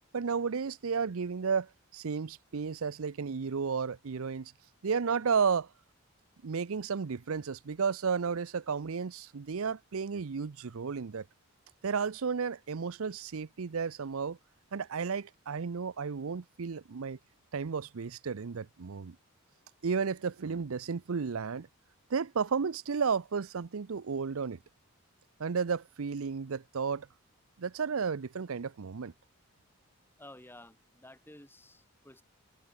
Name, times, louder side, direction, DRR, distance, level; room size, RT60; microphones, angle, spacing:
voice 1, 0.1-4.5 4.8-5.7 6.4-11.2 11.8-14.4 14.7-17.2 17.5-19.2 19.8-21.7 22.1-24.6 25.4-27.1 27.6-29.1, right 5 dB, 75° right, 0.6 m, -33 dB
voice 2, 30.2-32.2, left 1 dB, 10° left, 4.1 m, -53 dB
head